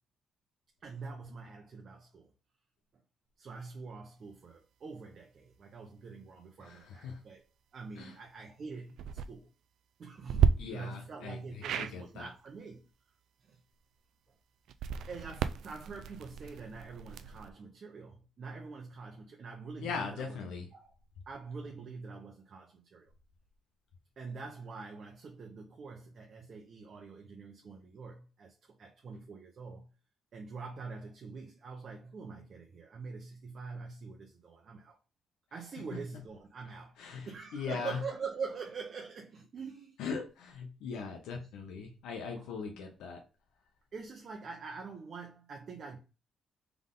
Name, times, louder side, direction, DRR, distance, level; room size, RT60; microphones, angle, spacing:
voice 1, 0.8-2.3 3.4-7.5 7.7-9.5 10.0-12.8 13.4-13.6 15.1-20.4 20.7-21.0 21.3-23.1 24.2-29.9 30.3-35.0 35.5-40.0 40.8-40.9 42.3-42.5 43.9-46.0, right 4 dB, 50° right, 0.8 m, -45 dB
voice 2, 6.6-7.2 8.0-8.1 10.6-12.3 19.8-20.7 37.0-38.0 40.0-43.2, left 5 dB, 90° left, 0.9 m, -40 dB
sound 1, 8.9-9.3 10.3-10.5 11.6-11.9 14.7-17.5, right 7 dB, 75° right, 0.3 m, -32 dB
3.7 x 3.5 x 3.8 m
cardioid pair, 90°, 0 cm